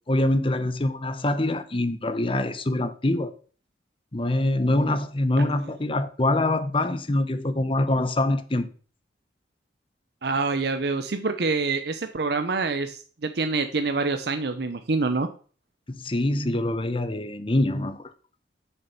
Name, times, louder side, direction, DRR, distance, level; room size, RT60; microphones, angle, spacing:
voice 1, 0.1-3.3 4.1-8.7 15.9-18.1, left 1 dB, 30° left, 0.8 m, -24 dB
voice 2, 10.2-15.3, right 3 dB, 60° right, 0.7 m, -26 dB
6.9 x 6.9 x 5.8 m
head